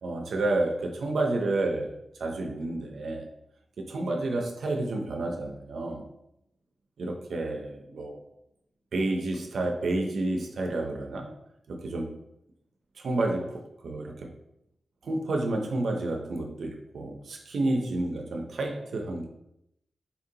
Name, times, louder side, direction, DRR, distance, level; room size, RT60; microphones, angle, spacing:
voice 1, 0.0-3.3 3.8-6.1 7.0-8.2 8.9-11.3 11.7-12.1 13.0-14.3 15.0-19.3, right 2 dB, 80° right, 2 dB, 0.6 m, -30 dB
4.2 x 2.7 x 3.8 m, 0.82 s
wide cardioid pair, 110°, 0 cm